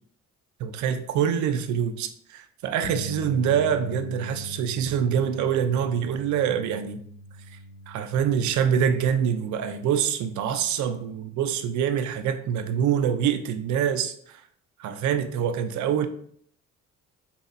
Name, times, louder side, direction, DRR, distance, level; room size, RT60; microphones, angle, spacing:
voice 1, 0.6-7.0 7.5-7.6 7.9-14.4 14.8-16.1, right 8 dB, 75° right, 9 dB, 0.5 m, -25 dB
Bass guitar, 2.8-9.1, left 1 dB, 70° left, 0.5 m, -40 dB
4.0 x 2.3 x 2.5 m, 0.62 s
cardioid pair, 90°, 30 cm